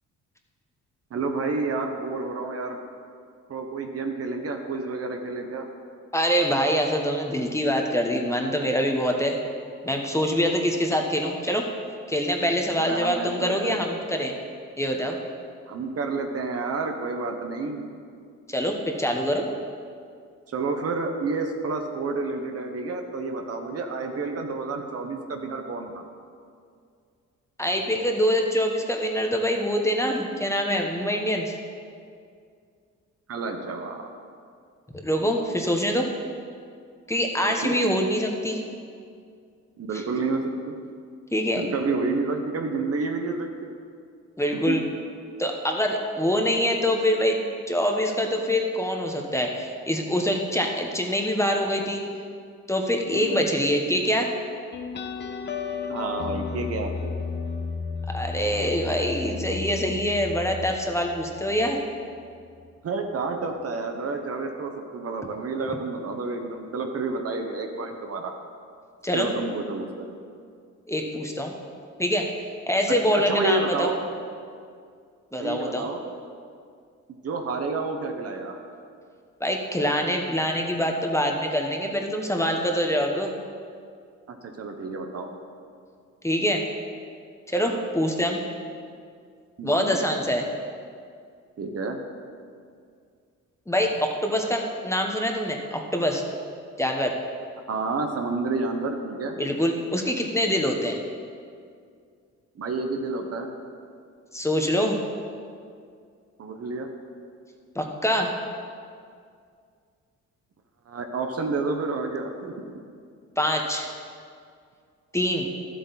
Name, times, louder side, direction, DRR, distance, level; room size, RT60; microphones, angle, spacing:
voice 1, 1.1-2.8 3.5-5.7 12.8-13.8 15.7-17.9 20.5-26.0 33.3-34.1 37.4-37.8 39.8-40.7 41.6-43.5 44.5-44.8 53.1-53.4 55.9-57.1 62.8-68.3 69.1-70.1 73.1-74.0 75.4-76.0 77.1-78.6 84.3-85.3 87.6-87.8 89.6-90.0 91.6-92.0 97.7-99.4 102.6-103.5 106.4-106.9 110.9-112.6, right 3 dB, 50° right, 4 dB, 1.1 m, -30 dB
voice 2, 6.1-9.4 9.8-11.6 12.1-14.3 14.8-15.2 18.5-19.4 27.6-31.5 35.0-36.1 37.1-38.6 39.9-40.0 41.3-41.6 44.4-44.8 45.4-47.4 47.7-52.0 52.7-54.3 58.1-61.8 69.0-69.3 70.9-71.5 72.0-72.3 72.7-73.9 75.3-75.8 79.4-83.3 86.2-86.6 87.5-88.4 89.6-90.5 93.7-96.2 96.8-97.2 99.4-101.0 104.3-105.0 107.7-108.3 113.4-113.9 115.1-115.5, equal, 10° left, 2 dB, 1.2 m, -25 dB
sound 1, 54.7-61.9, left 5 dB, 35° left, 0.8 m, -33 dB
12.0 x 7.9 x 4.1 m, 2.2 s
cardioid pair, 90°, 30 cm